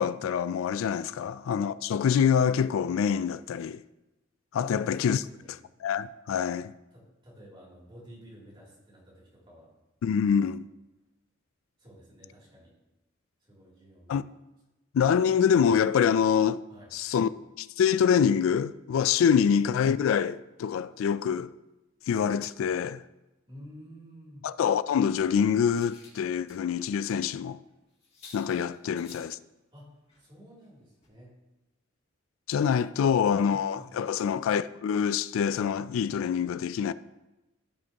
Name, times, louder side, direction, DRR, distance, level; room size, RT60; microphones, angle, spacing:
voice 1, 0.0-3.8 4.5-5.2 5.8-6.7 10.0-10.7 14.1-14.2 14.9-16.6 16.9-17.3 17.6-21.5 22.1-23.0 24.4-27.6 28.3-29.3 32.5-36.9, left 7 dB, 85° left, 0.3 m, -25 dB
voice 2, 4.6-5.6 6.9-9.7 11.8-12.7 13.4-14.2 16.7-16.9 19.3-19.4 23.5-24.4 28.9-29.0 29.7-29.9 30.2-31.3 32.9-34.0 36.4-36.5, equal, 25° right, 2.9 m, -50 dB
sound 1, 25.0-26.9 27.3-27.4 27.7-27.8 28.0-29.3 30.1-30.3 30.6-30.8 31.0-31.1, left 4 dB, 30° left, 2.3 m, -54 dB
14.5 x 5.1 x 2.9 m
head